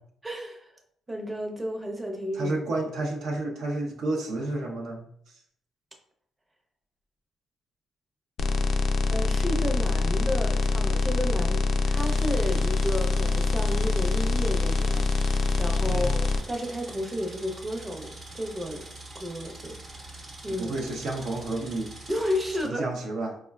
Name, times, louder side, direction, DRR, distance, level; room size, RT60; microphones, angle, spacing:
voice 1, 0.2-0.7 1.1-2.6 9.1-18.1 18.3-18.9 19.1-20.8 22.1-22.9, equal, 20° right, 2 dB, 0.6 m, -32 dB
voice 2, 2.3-5.4 15.9-16.1 20.6-21.9 22.6-23.4, right 2 dB, 75° right, 1 dB, 0.5 m, -31 dB
sound 1, 8.4-16.4, left 3 dB, 65° left, 0.3 m, -24 dB
sound 2, 11.9-22.7, right 2 dB, 50° right, 0.9 m, -44 dB
4.5 x 2.1 x 2.2 m, 0.68 s
cardioid pair, 90°, 0 cm